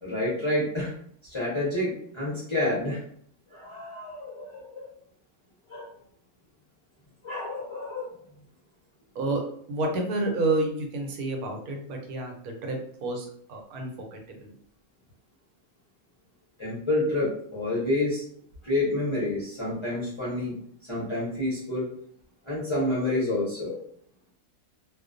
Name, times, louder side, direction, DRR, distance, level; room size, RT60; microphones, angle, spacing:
voice 1, 0.0-0.9 1.2-3.0 3.5-4.9 5.7-5.9 7.2-8.1 16.6-18.2 18.6-20.5 20.9-21.9 22.5-23.8, left 1 dB, 35° left, -8 dB, 0.5 m, -28 dB
voice 2, 9.7-14.5, right 2 dB, 85° right, 2 dB, 1.1 m, -30 dB
2.3 x 2.1 x 2.4 m, 0.62 s
omnidirectional pair, 1.5 m